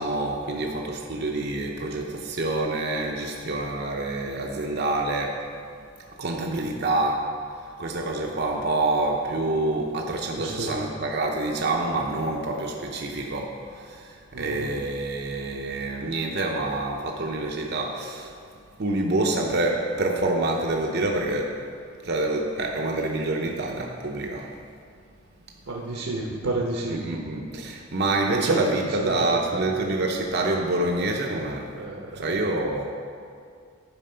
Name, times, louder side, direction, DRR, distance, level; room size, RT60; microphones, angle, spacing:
voice 1, 0.0-5.4 6.2-7.3 7.5-18.4 18.8-21.6 22.0-24.5 26.9-31.7 32.1-32.8, right 2 dB, 50° right, 1 dB, 0.7 m, -27 dB
voice 2, 10.4-10.9 14.3-14.7 25.7-27.2 28.3-29.6 31.7-32.3, right 2 dB, 80° right, -2 dB, 1.0 m, -30 dB
11.0 x 4.6 x 5.6 m, 2.3 s
head